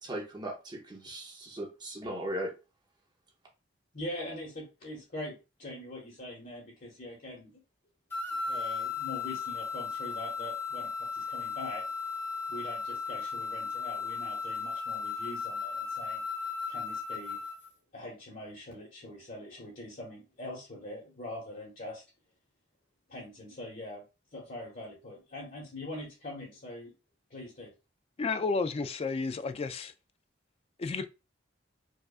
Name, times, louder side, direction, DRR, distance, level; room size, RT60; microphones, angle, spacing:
voice 1, 0.0-2.5, right 1 dB, 20° right, 0.7 m, -38 dB
voice 2, 3.9-7.6 8.3-11.9 12.5-16.2 16.7-17.4 17.9-22.0 23.1-24.0 24.3-26.9 27.3-27.7, left 1 dB, 45° left, 1.0 m, -43 dB
sound 1, 8.1-17.7, left 5 dB, 10° left, 0.9 m, -36 dB
voice 3, 28.2-29.9 30.8-31.1, left 4 dB, 30° left, 0.3 m, -31 dB
4.9 x 2.4 x 2.4 m
head